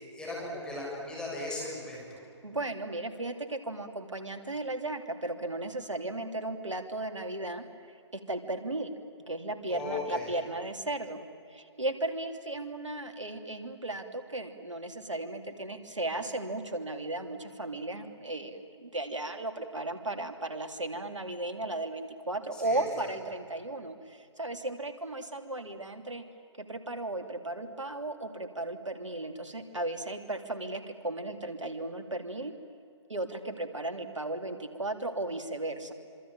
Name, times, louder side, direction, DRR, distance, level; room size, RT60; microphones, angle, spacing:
voice 1, 0.0-2.2 9.7-10.3 22.5-23.1, left 2 dB, 5° left, -3 dB, 7.3 m, -37 dB
voice 2, 2.4-7.6 8.1-8.9 9.3-11.2 11.5-26.2 26.6-32.5 33.1-35.9, right 2 dB, 90° right, 7 dB, 3.2 m, -35 dB
26.5 x 25.0 x 9.0 m, 2.5 s
figure-of-eight pair, 135°, 15 cm